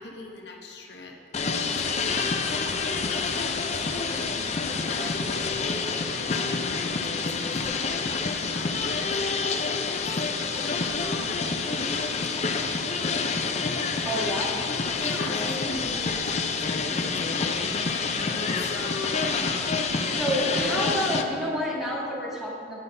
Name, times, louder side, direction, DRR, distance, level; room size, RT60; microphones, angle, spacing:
voice 1, 0.0-13.1 14.0-14.4 14.9-17.6 18.3-19.5, left 2 dB, 65° left, 2 dB, 0.9 m, -41 dB
sound 1, 1.3-21.2, left 4 dB, 40° left, 0.5 m, -28 dB
voice 2, 14.0-14.6 20.0-22.8, equal, ahead, -6 dB, 1.7 m, -29 dB
10.5 x 5.6 x 5.4 m, 2.4 s
head